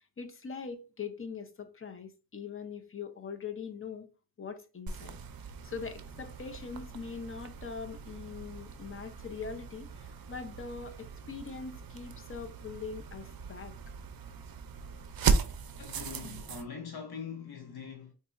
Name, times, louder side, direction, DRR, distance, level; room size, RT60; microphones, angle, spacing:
voice 1, 0.2-4.1 4.4-5.2 5.6-13.7, left 5 dB, 35° left, 0.6 m, -42 dB
sound 1, 4.9-16.6, right 5 dB, 65° right, 0.5 m, -37 dB
voice 2, 15.8-18.1, left 6 dB, 75° left, 0.8 m, -42 dB
3.9 x 2.6 x 2.4 m
wide cardioid pair, 80°, 38 cm